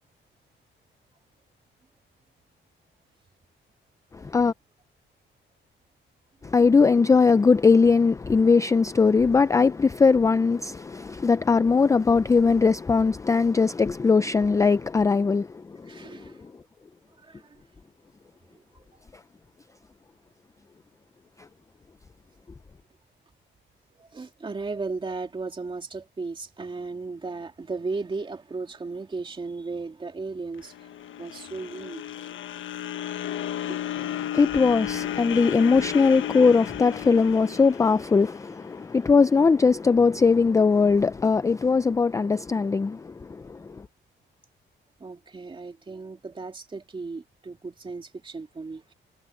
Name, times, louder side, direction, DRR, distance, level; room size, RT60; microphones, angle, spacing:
voice 1, 4.1-4.5 6.4-16.3 34.3-43.9, left 4 dB, 15° left, 0.4 m, -20 dB
voice 2, 15.8-16.5 17.2-17.6 18.5-19.0 23.9-32.3 33.7-33.8 45.0-48.9, right 3 dB, 25° right, 2.5 m, -36 dB
sound 1, 30.6-38.8, left 11 dB, 75° left, 1.3 m, -34 dB
cardioid pair, 150°, 21 cm